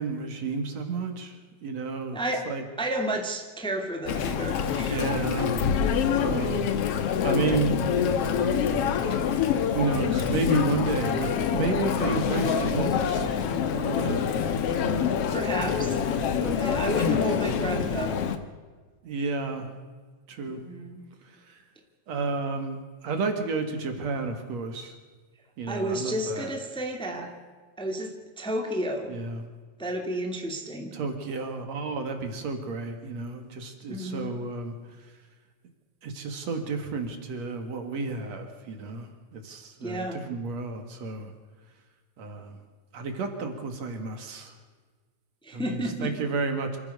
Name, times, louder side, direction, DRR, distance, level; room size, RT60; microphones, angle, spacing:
voice 1, 0.0-2.2 2.5-2.6 4.8-5.7 6.1-7.7 9.0-9.4 9.7-13.4 13.7-14.5 15.9-16.0 16.4-16.7 19.0-19.7 20.3-20.6 21.2-21.6 22.1-25.0 25.6-26.5 29.1-29.5 30.9-34.7 36.0-41.3 42.2-42.6 42.9-44.5 45.5-46.8, right 4 dB, 65° right, 6 dB, 3.1 m, -31 dB
voice 2, 2.1-2.5 2.8-4.9 15.3-16.0 16.6-18.2 20.5-21.0 25.7-27.3 27.8-29.1 29.8-30.9 33.9-34.4 39.8-40.2 45.4-46.1, right 1 dB, ahead, 2 dB, 2.0 m, -31 dB
Chatter, 4.1-18.4, left 7 dB, 60° left, 2.0 m, -26 dB
27.0 x 15.0 x 6.7 m, 1.4 s
omnidirectional pair, 3.4 m